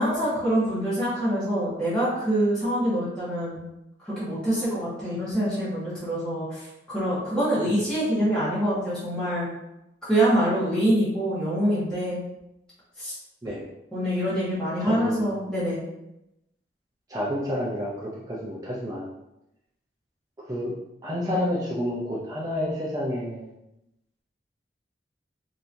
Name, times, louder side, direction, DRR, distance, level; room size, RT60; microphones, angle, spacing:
voice 1, 0.0-3.6 4.0-9.5 10.0-12.2 13.0-13.2 13.9-15.8, right 1 dB, 5° left, -11 dB, 1.2 m, -25 dB
voice 2, 14.8-15.3 17.1-19.1 20.4-20.7 21.0-23.5, equal, 20° right, -7 dB, 0.6 m, -29 dB
3.9 x 2.9 x 2.6 m, 0.87 s
head